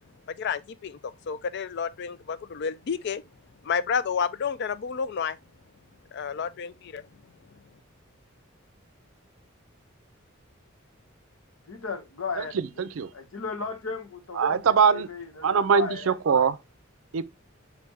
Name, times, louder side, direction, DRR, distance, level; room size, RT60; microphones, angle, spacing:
voice 1, 0.3-1.0 1.3-3.2 3.6-5.4 6.1-7.0, left 6 dB, 55° left, 0.4 m, -30 dB
voice 2, 11.7-12.6 13.1-16.1, left 5 dB, 90° left, 1.0 m, -35 dB
voice 3, 12.5-13.1 14.4-15.1 15.4-16.6 17.1-17.2, right 6 dB, 75° right, 0.4 m, -22 dB
4.9 x 3.4 x 3.2 m
head